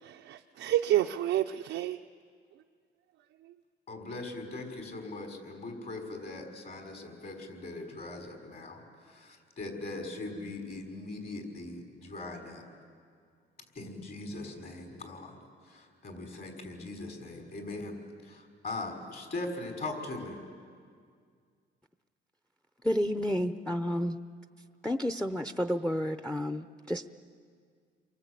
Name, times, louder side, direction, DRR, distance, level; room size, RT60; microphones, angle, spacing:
voice 1, 0.0-2.0 3.4-3.5, right 13 dB, 85° right, 3 dB, 0.7 m, -29 dB
voice 2, 3.9-12.6 13.8-15.4 15.7-18.0 18.2-20.4, left 2 dB, 50° left, 2 dB, 6.0 m, -40 dB
voice 3, 22.8-24.2 24.8-27.1, equal, 5° left, 9 dB, 0.8 m, -30 dB
29.5 x 23.5 x 8.4 m, 2.1 s
cardioid pair, 90°, 20 cm